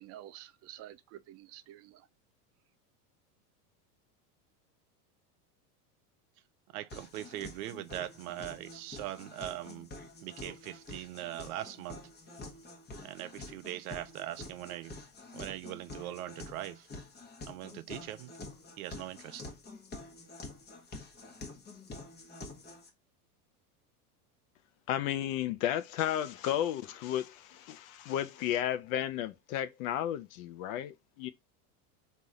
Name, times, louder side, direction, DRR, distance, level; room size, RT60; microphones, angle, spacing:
voice 1, 0.0-2.1, right 13 dB, 35° right, 0.4 m, -50 dB
voice 2, 6.7-9.9 10.2-12.0 13.0-14.9 15.3-16.9 17.5-18.3 18.8-19.4, right 14 dB, 70° right, 0.7 m, -41 dB
sound 1, 6.9-22.9, left 2 dB, 20° left, 1.2 m, -48 dB
voice 3, 24.9-31.3, left 11 dB, 60° left, 0.7 m, -33 dB
4.0 x 2.7 x 4.8 m
supercardioid pair, 115°, 46 cm